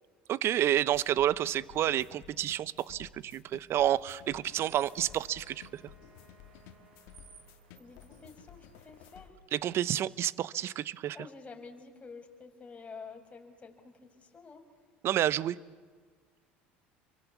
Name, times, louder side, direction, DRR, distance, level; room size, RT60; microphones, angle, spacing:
voice 1, 0.3-5.8 9.5-11.2 15.0-15.6, right 12 dB, 50° right, 18 dB, 0.9 m, -29 dB
sound 1, 0.9-9.3, left 9 dB, 70° left, 2.0 m, -54 dB
Wind instrument woodwind instrument, 4.2-7.9, right 1 dB, 25° right, 7.1 m, -63 dB
sound 2, 4.2-9.3, right 7 dB, 90° right, 3.0 m, -61 dB
voice 2, 7.7-9.3 11.1-14.6, left 4 dB, 25° left, 3 dB, 6.2 m, -49 dB
30.0 x 23.5 x 8.3 m, 1.5 s
hypercardioid pair, 75°, 5 cm